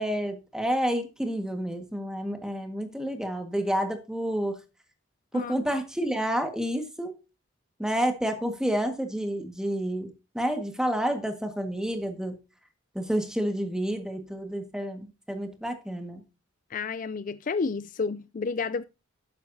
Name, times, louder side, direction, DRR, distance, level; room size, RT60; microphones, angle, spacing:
voice 1, 0.0-4.6 5.3-7.1 7.8-12.4 13.0-16.2, equal, 5° right, 1.6 m, -29 dB
voice 2, 16.7-18.8, left 4 dB, 40° left, 0.4 m, -30 dB
12.0 x 9.5 x 2.7 m
head